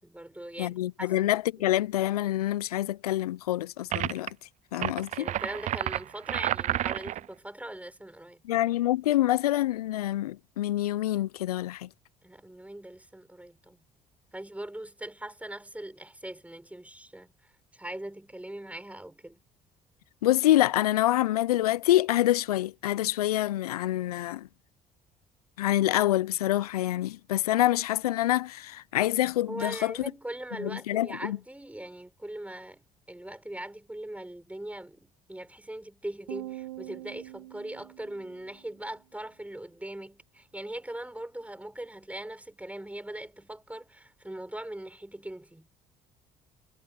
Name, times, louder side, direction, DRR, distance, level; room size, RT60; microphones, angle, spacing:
voice 1, 0.0-1.8 4.8-8.4 12.2-13.8 14.3-19.4 29.5-32.8 33.1-45.7, right 1 dB, 5° right, 6.7 m, -41 dB
voice 2, 0.6-4.3 4.7-5.3 8.5-11.9 20.2-24.5 25.6-29.9 30.6-31.4, left 14 dB, 85° left, 0.6 m, -26 dB
sound 1, 3.9-4.3 4.7-7.3, right 12 dB, 40° right, 0.4 m, -30 dB
sound 2, 36.3-38.7, right 16 dB, 80° right, 1.4 m, -43 dB
hypercardioid pair, 55°, 19 cm